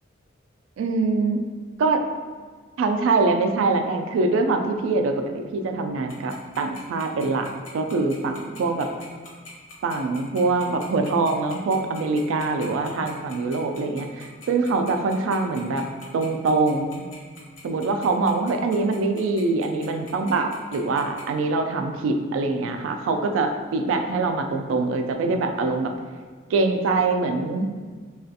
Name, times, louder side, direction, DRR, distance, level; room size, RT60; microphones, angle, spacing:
voice 1, 0.8-1.4 1.8-2.0 2.8-8.9 9.8-15.9 16.1-17.0 17.6-25.9 26.5-27.7, right 3 dB, 80° right, 6 dB, 0.3 m, -24 dB
Tick-tock, 6.1-21.2, left 3 dB, 70° left, 0.7 m, -44 dB
3.2 x 2.4 x 2.6 m, 1.5 s
head